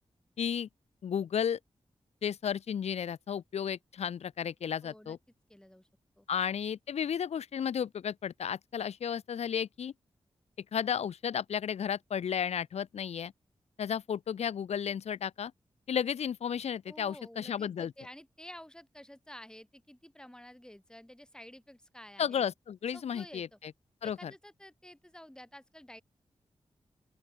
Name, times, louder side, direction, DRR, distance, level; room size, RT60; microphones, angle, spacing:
voice 1, 0.4-0.7 1.0-1.6 2.2-5.2 6.3-9.9 10.7-13.3 13.8-15.5 15.9-17.9 22.2-23.7 24.0-24.3, left 8 dB, 85° left, 0.7 m, -33 dB
voice 2, 4.8-5.2 5.5-5.9 6.2-6.3 16.9-22.5 22.9-23.6 24.0-26.0, left 1 dB, 5° left, 7.5 m, -51 dB
open air
wide cardioid pair, 85°, 11 cm